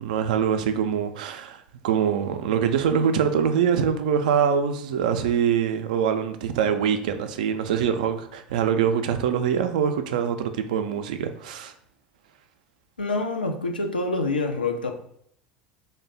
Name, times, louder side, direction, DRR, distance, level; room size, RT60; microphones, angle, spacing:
voice 1, 0.0-11.7, right 8 dB, 60° right, 0.3 m, -24 dB
voice 2, 13.0-14.9, left 3 dB, 80° left, 0.4 m, -26 dB
3.2 x 2.1 x 3.9 m
figure-of-eight pair, 70°, 5 cm